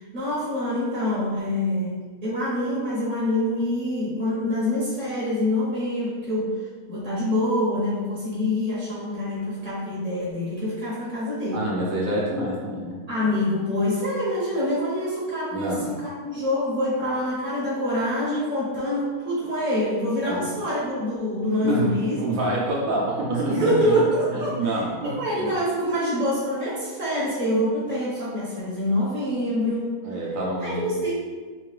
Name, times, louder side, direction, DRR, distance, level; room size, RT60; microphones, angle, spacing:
voice 1, 0.0-6.5 6.9-11.6 13.1-22.2 23.6-24.7 25.0-30.0 30.6-31.1, left 1 dB, 40° right, -8 dB, 0.9 m, -25 dB
voice 2, 11.5-13.0 15.5-16.0 20.2-20.5 21.6-24.0 24.3-25.5 30.0-31.0, right 1 dB, 65° right, -4 dB, 1.1 m, -27 dB
3.7 x 2.6 x 3.2 m, 1.5 s
omnidirectional pair, 1.6 m